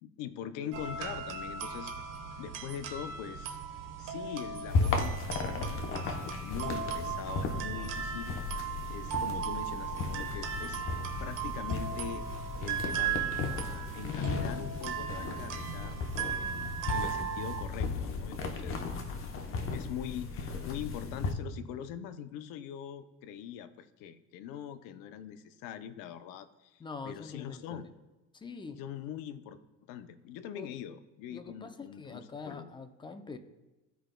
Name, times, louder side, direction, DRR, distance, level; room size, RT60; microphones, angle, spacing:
voice 1, 0.0-1.9 2.4-3.6 4.0-8.4 8.9-10.8 11.2-12.3 12.6-13.2 13.5-16.0 16.4-18.8 19.7-27.9 28.8-29.6 29.9-32.7, left 9 dB, 85° left, 11 dB, 0.6 m, -42 dB
sound 1, 0.7-17.6, right 7 dB, 70° right, 1.2 m, -37 dB
sound 2, 4.7-21.3, left 4 dB, 40° left, 0.8 m, -35 dB
voice 2, 26.8-27.9 28.3-28.8 30.6-30.7 31.3-33.4, left 4 dB, 15° left, 8 dB, 0.5 m, -44 dB
14.5 x 5.1 x 2.2 m, 1.1 s
cardioid pair, 135°, 33 cm